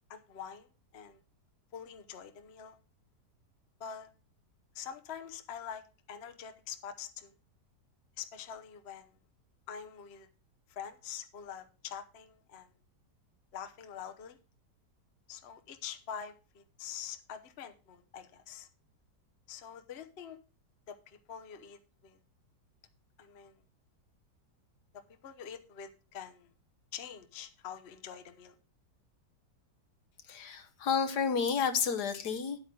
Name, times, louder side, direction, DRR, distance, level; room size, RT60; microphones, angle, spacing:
voice 1, 0.1-0.7 0.9-1.2 1.7-2.8 3.8-4.1 4.7-5.8 6.1-7.3 8.2-9.1 9.7-10.3 10.7-12.7 13.5-14.4 15.3-18.7 19.5-20.4 20.9-22.2 23.2-23.6 25.2-26.5 26.9-28.5, left 8 dB, 45° left, 1.0 m, -45 dB
voice 2, 30.3-32.6, left 6 dB, 70° left, 1.5 m, -31 dB
10.0 x 8.6 x 3.7 m
omnidirectional pair, 1.8 m